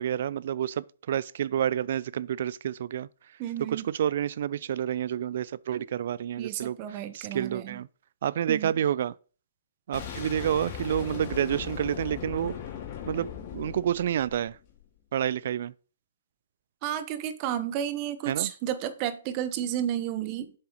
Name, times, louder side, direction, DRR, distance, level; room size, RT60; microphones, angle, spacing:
voice 1, 0.0-3.1 3.7-7.9 8.2-9.1 9.9-12.5 13.1-14.6 15.1-15.7 18.3-18.5, right 10 dB, 55° right, 0.4 m, -29 dB
voice 2, 3.4-3.9 5.8-5.9 6.4-7.8 8.5-8.7 16.8-20.5, right 11 dB, 35° right, 1.0 m, -32 dB
Boom, 9.9-14.8, left 8 dB, 35° left, 2.9 m, -38 dB
7.8 x 7.1 x 3.1 m
hypercardioid pair, 135°, 0 cm